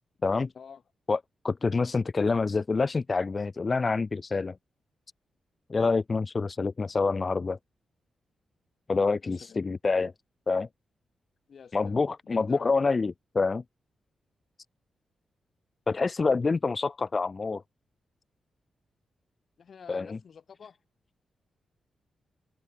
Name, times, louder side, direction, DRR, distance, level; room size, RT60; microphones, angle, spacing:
voice 1, 0.2-0.5 1.1-1.2 1.4-4.6 5.7-7.6 8.9-10.1 10.5-10.7 11.7-13.6 15.9-17.6 19.9-20.2, left 4 dB, 30° left, 0.4 m, -27 dB
voice 2, 11.5-12.7 19.6-20.8, left 6 dB, 50° left, 1.5 m, -48 dB
wide cardioid pair, 155°, 0 cm